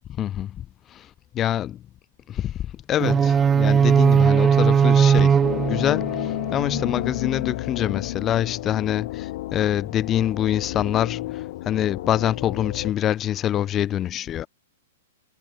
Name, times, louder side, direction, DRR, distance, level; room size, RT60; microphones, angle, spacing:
voice 1, 0.2-0.7 0.9-1.1 1.3-1.8 2.3-2.5 2.9-5.4 5.7-14.5, left 11 dB, 25° left, 2.4 m, -25 dB
sound 1, 3.0-7.0, right 7 dB, 20° right, 0.9 m, -19 dB
sound 2, 5.4-12.9, left 16 dB, 55° left, 3.0 m, -31 dB
hypercardioid pair, 120°, 0 cm